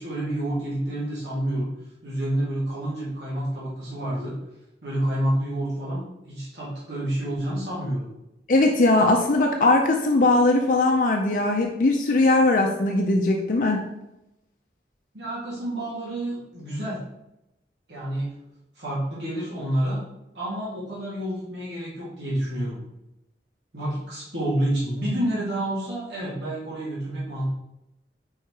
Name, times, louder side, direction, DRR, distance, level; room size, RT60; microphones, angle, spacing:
voice 1, 0.0-1.7 2.0-4.3 4.8-8.1 15.1-17.0 17.9-18.3 18.8-20.0 20.3-22.8 23.7-27.4, right 1 dB, 80° right, -8 dB, 1.9 m, -28 dB
voice 2, 8.5-13.8, left 2 dB, 50° left, 1 dB, 0.5 m, -20 dB
4.7 x 4.5 x 4.7 m, 0.89 s
head